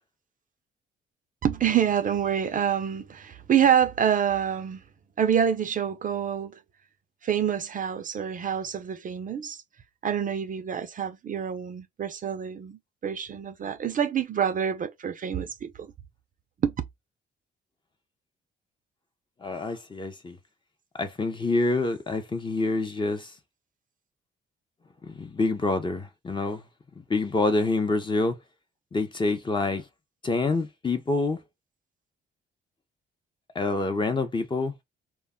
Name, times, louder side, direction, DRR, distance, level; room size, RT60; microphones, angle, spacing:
voice 1, 1.4-4.8 5.2-6.6 7.2-9.6 10.0-15.9 16.6-16.7, right 8 dB, 45° right, 0.5 m, -26 dB
voice 2, 19.4-20.4 21.0-23.3 25.0-26.6 27.0-28.4 28.9-29.9 30.2-31.4 33.5-34.7, left 3 dB, 25° left, 0.7 m, -27 dB
2.2 x 2.0 x 3.6 m
cardioid pair, 90°, 20 cm